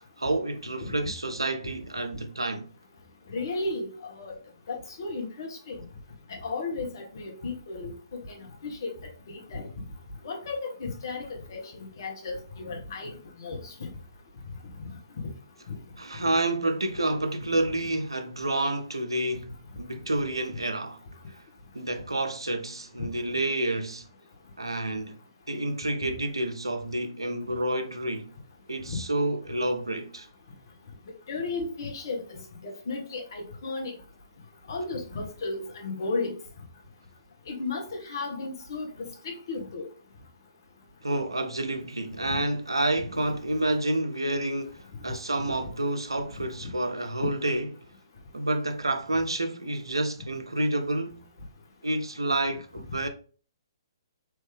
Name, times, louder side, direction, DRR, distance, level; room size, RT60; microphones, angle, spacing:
voice 1, 0.0-2.7 16.0-21.0 21.3-21.4 21.7-24.1 24.6-25.2 25.5-28.3 28.7-30.3 41.0-47.9 48.3-51.2 51.8-53.1, right 1 dB, 80° right, 0.6 m, -29 dB
voice 2, 3.3-4.3 4.7-5.8 6.3-7.9 8.4-8.9 9.3-9.7 10.2-12.4 12.6-13.9 14.8-14.9 15.7-15.8 26.0-26.1 28.9-29.0 31.3-33.9 34.7-36.4 37.5-39.9 42.3-42.4 43.1-43.2 46.6-46.7, left 3 dB, 55° left, 1.2 m, -34 dB
3.4 x 3.0 x 3.4 m
figure-of-eight pair, 125°, 2 cm